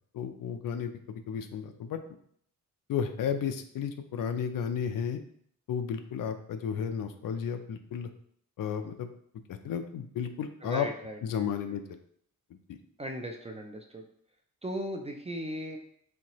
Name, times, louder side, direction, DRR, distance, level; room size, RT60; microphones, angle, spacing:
voice 1, 0.1-2.0 2.9-5.2 5.7-8.1 8.6-9.1 9.5-10.9 11.2-12.0 12.7-12.8, left 7 dB, 80° left, 8 dB, 0.5 m, -33 dB
voice 2, 10.6-11.5 13.0-14.1 14.6-15.8, equal, 20° right, 3 dB, 0.3 m, -37 dB
4.3 x 2.7 x 2.9 m, 0.65 s
wide cardioid pair, 165°, 33 cm